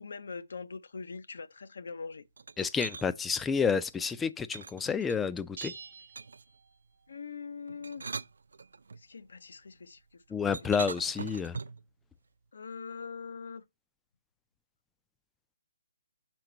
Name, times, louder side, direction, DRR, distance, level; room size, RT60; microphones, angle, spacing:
voice 1, 0.0-2.2 7.1-8.0 9.0-10.2 12.5-13.6, left 5 dB, 75° left, 0.5 m, -42 dB
sound 1, 2.4-3.1 4.5-5.4 6.1-6.5 7.7-9.0 10.5-11.9, right 4 dB, 80° right, 0.4 m, -41 dB
voice 2, 2.6-5.7 10.3-11.6, left 6 dB, 10° left, 0.3 m, -30 dB
sound 2, 5.6-7.1, right 5 dB, 60° right, 0.9 m, -46 dB
5.8 x 4.6 x 3.9 m
hypercardioid pair, 160°, 0 cm